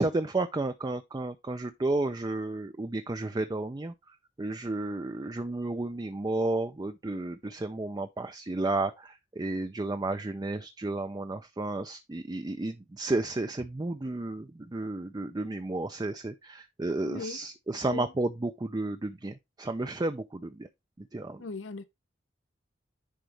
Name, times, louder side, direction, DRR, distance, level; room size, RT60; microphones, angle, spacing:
voice 1, 0.0-3.9 4.4-20.7 21.1-21.4, right 2 dB, 20° right, 0.4 m, -32 dB
voice 2, 17.0-17.4 17.8-18.1 21.4-21.8, left 4 dB, 75° left, 0.7 m, -38 dB
10.0 x 4.0 x 3.3 m
head